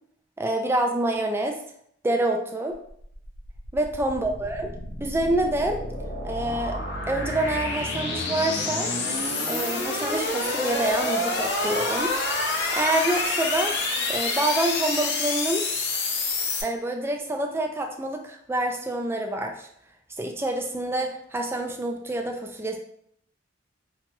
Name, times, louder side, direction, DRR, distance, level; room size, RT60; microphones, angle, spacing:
voice 1, 0.4-1.6 2.0-2.8 3.7-4.7 5.0-5.8 6.2-6.8 7.1-8.9 9.5-12.1 12.8-13.7 14.1-15.6 16.6-19.7 20.2-22.8, right 1 dB, 15° right, 3 dB, 0.3 m, -27 dB
sound 1, 2.9-16.6, left 2 dB, 65° left, 0.6 m, -28 dB
2.9 x 2.2 x 2.9 m, 0.68 s
head